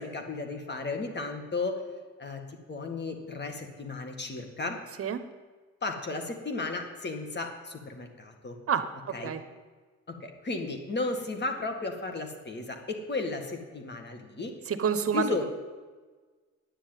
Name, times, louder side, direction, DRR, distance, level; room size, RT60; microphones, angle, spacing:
voice 1, 0.0-1.8 2.2-2.4 2.7-4.8 5.8-8.6 9.1-9.3 10.1-14.5 15.1-15.4, left 3 dB, 35° left, 4 dB, 2.0 m, -34 dB
voice 2, 8.7-9.4 14.7-15.2, right 7 dB, 50° right, 10 dB, 1.1 m, -28 dB
9.9 x 7.8 x 9.1 m, 1.4 s
cardioid pair, 90°, 30 cm